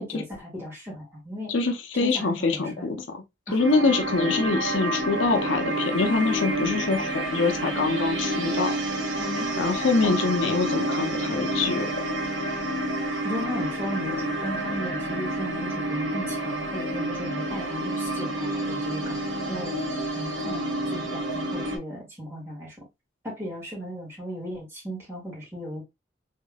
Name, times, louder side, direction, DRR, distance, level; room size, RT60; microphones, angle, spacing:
voice 1, 0.0-1.5 2.0-2.9 3.5-3.6 9.2-9.6 10.0-10.2 13.1-19.2 19.5-19.8 20.1-22.9 23.2-25.8, equal, 15° right, 2.0 m, -36 dB
voice 2, 1.5-3.0 3.5-8.7 9.6-12.1, left 4 dB, 75° left, 0.6 m, -25 dB
sound 1, 3.6-21.8, right 1 dB, 65° right, 1.2 m, -29 dB
3.6 x 3.5 x 2.2 m
head